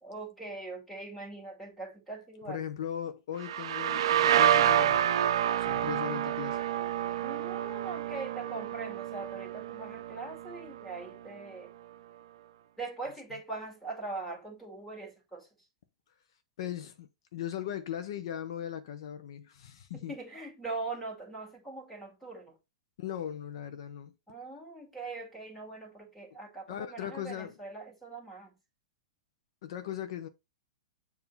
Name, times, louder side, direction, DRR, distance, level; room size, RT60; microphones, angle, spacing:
voice 1, 0.0-2.6 7.2-11.7 12.8-15.5 19.9-22.6 24.3-28.5, right 3 dB, 5° left, 2.0 m, -41 dB
voice 2, 2.4-5.0 5.6-6.6 16.6-20.1 23.0-24.1 26.7-27.6 29.6-30.3, left 10 dB, 60° left, 0.7 m, -38 dB
sound 1, 3.4-11.0, right 11 dB, 65° right, 0.5 m, -28 dB
7.0 x 2.7 x 5.5 m
supercardioid pair, 160°, 3 cm